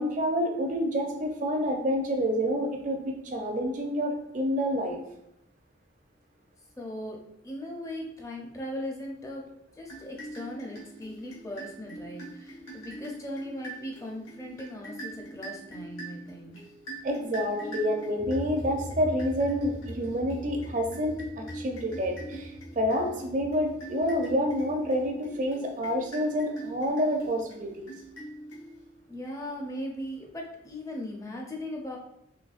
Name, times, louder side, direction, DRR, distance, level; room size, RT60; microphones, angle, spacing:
voice 1, 0.0-5.0 17.0-27.9, equal, 40° right, 2 dB, 0.5 m, -28 dB
voice 2, 6.8-7.2 7.4-9.5 9.8-16.6 29.1-32.0, left 1 dB, 15° left, 0 dB, 0.5 m, -38 dB
sound 1, 9.8-29.1, right 1 dB, 85° left, 1.2 m, -44 dB
sound 2, 18.2-25.1, left 1 dB, 65° left, 0.8 m, -42 dB
3.9 x 3.0 x 2.4 m, 0.82 s
head